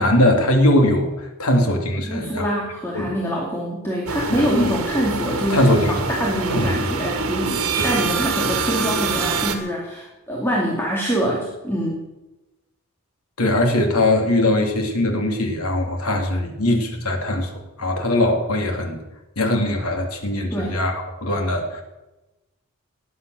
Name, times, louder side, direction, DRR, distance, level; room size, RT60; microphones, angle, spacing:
voice 1, 0.0-2.5 2.9-3.2 4.3-4.7 5.5-6.0 6.5-6.8 7.8-7.9 13.4-17.5 17.8-19.0 19.4-21.8, left 1 dB, 90° left, 3 dB, 3.0 m, -20 dB
voice 2, 2.1-12.0 20.5-20.8, equal, 10° left, -3 dB, 2.5 m, -25 dB
sound 1, 4.1-9.6, right 4 dB, 80° right, 1.9 m, -25 dB
19.0 x 9.7 x 6.5 m, 1.1 s
head